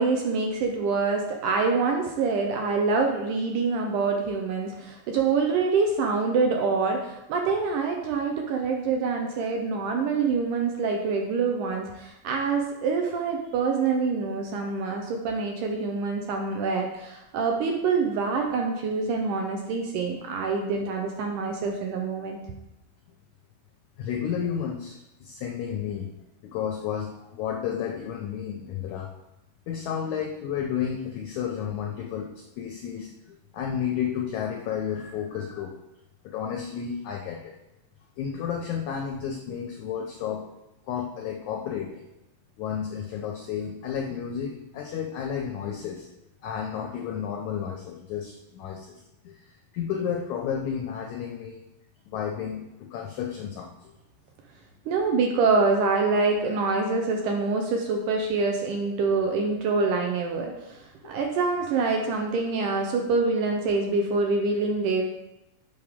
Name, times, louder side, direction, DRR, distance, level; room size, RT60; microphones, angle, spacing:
voice 1, 0.0-22.4 54.9-60.8 61.0-65.0, right 4 dB, 75° right, 2 dB, 2.0 m, -25 dB
voice 2, 24.0-26.1 26.4-29.1 29.7-33.1 33.5-35.8 36.2-37.5 38.2-40.4 40.9-42.0 42.6-46.1 46.4-49.0 49.2-49.3 49.7-51.6 52.1-53.7 61.0-61.2, left 8 dB, 85° left, 1 dB, 1.7 m, -32 dB
7.9 x 5.2 x 3.5 m, 0.93 s
omnidirectional pair, 4.2 m